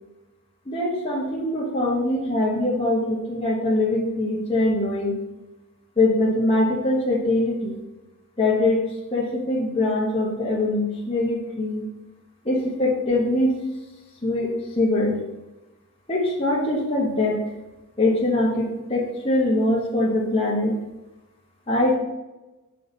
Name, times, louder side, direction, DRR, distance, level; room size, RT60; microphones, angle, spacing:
voice 1, 0.7-5.2 6.0-7.8 8.4-8.8 9.1-11.8 12.4-13.5 14.2-15.2 16.1-17.4 18.0-20.7 21.7-22.0, left 2 dB, 30° left, -6 dB, 1.3 m, -22 dB
6.6 x 6.2 x 4.1 m, 1.0 s
head